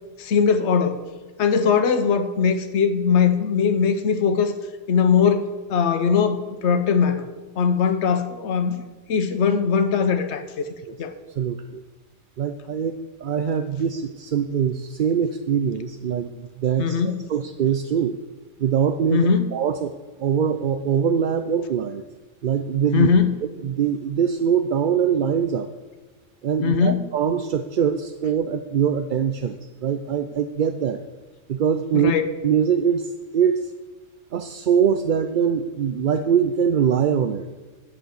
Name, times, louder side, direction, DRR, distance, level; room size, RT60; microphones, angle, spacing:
voice 1, 0.2-1.0 1.4-4.5 4.9-7.3 7.6-10.7 11.0-11.1 16.8-17.3 19.1-19.5 22.9-23.4 26.6-27.0 31.9-32.2, left 6 dB, 70° left, 8 dB, 1.1 m, -20 dB
voice 2, 11.3-11.8 12.4-17.0 17.3-18.2 18.6-19.9 20.2-22.0 22.4-23.1 23.6-25.7 26.4-31.0 31.5-32.1 32.4-33.7 34.3-37.5, right 8 dB, 55° right, 9 dB, 0.6 m, -23 dB
11.0 x 6.6 x 7.9 m, 1.3 s
omnidirectional pair, 1.2 m